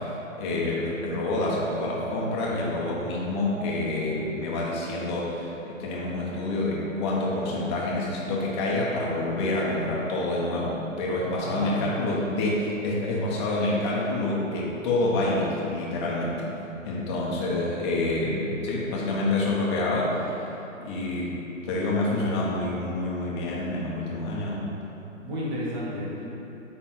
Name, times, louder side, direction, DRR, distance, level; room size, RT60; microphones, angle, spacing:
voice 1, 0.0-16.4 16.8-20.3 20.8-21.4 21.6-24.6, left 2 dB, 20° left, -5 dB, 1.0 m, -27 dB
voice 2, 11.3-12.1 25.2-26.2, left 1 dB, 10° right, -7 dB, 1.0 m, -32 dB
9.0 x 3.5 x 5.8 m, 3.0 s
figure-of-eight pair, 140°, 40 cm